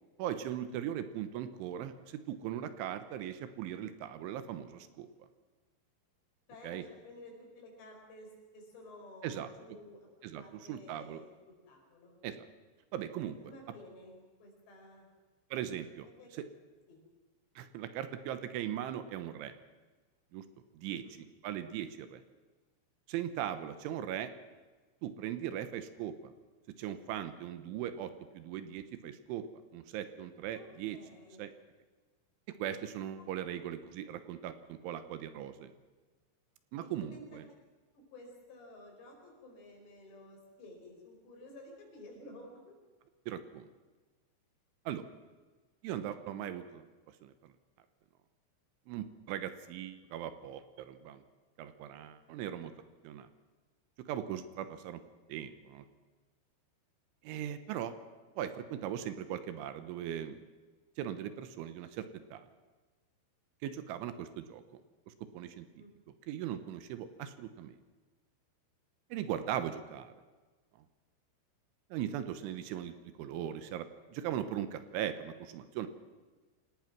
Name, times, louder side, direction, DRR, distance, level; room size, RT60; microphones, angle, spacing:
voice 1, 0.2-5.1 6.6-6.8 9.2-9.5 10.2-10.4 10.7-11.2 12.2-12.4 12.9-13.4 15.5-16.1 16.4-16.5 17.6-19.5 20.3-20.4 20.7-22.2 23.1-24.3 25.0-26.3 26.8-29.5 29.7-31.0 31.4-31.5 32.5-35.7 36.7-37.4 43.3-43.7 44.9-45.1 45.8-46.9 47.2-47.3 48.9-51.2 51.6-52.7 53.0-53.3 54.1-55.0 55.3-55.9 57.2-57.9 58.4-60.4 61.0-62.4 63.6-64.6 65.1-65.8 66.3-67.8 69.1-70.1 71.9-75.9, right 10 dB, 75° right, 11 dB, 3.3 m, -39 dB
voice 2, 6.5-12.2 13.5-14.2 14.4-15.1 16.0-16.3 16.9-17.0 21.0-21.2 30.5-30.7 30.9-31.5 36.8-37.4 37.9-42.7 65.8-65.9, left 1 dB, 60° left, 1 dB, 7.2 m, -53 dB
27.0 x 18.5 x 6.0 m, 1.3 s
omnidirectional pair, 5.7 m